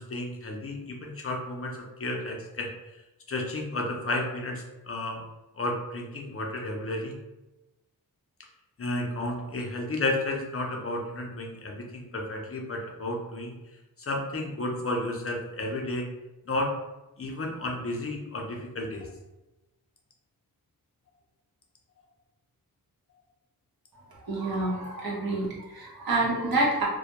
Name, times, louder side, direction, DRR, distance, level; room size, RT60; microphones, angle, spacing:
voice 1, 0.0-2.7 3.3-5.2 5.6-7.1 8.8-13.5 14.0-16.1 16.5-16.7 17.2-19.1, left 2 dB, 40° left, 1 dB, 0.5 m, -32 dB
voice 2, 24.2-26.8, right 2 dB, 70° right, -4 dB, 0.8 m, -28 dB
2.2 x 2.1 x 2.8 m, 1.0 s
wide cardioid pair, 85°, 37 cm